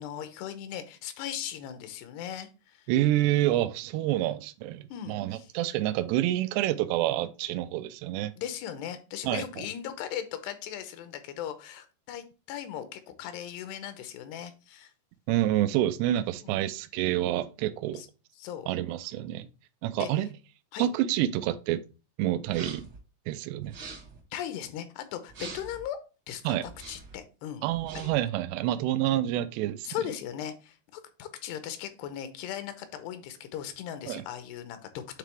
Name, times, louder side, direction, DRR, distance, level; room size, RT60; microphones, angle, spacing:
voice 1, 0.0-2.9 4.9-5.5 8.4-14.9 16.4-16.6 17.9-18.1 18.4-18.7 20.0-20.2 20.7-20.9 24.3-26.0 26.3-27.6 27.9-28.1 29.8-35.2, left 10 dB, 90° left, 2.8 m, -38 dB
voice 2, 2.9-8.3 9.2-9.4 15.3-18.0 18.7-19.5 19.8-20.3 20.8-21.8 22.2-22.9 23.3-23.8 26.4-26.6 27.6-29.9 34.1-34.2, right 13 dB, 90° right, 2.7 m, -28 dB
sound 1, 22.4-23.0 23.6-24.2 25.3-25.8 26.6-27.2 27.7-28.2, right 3 dB, 70° right, 1.1 m, -44 dB
9.0 x 3.8 x 3.3 m
omnidirectional pair, 4.7 m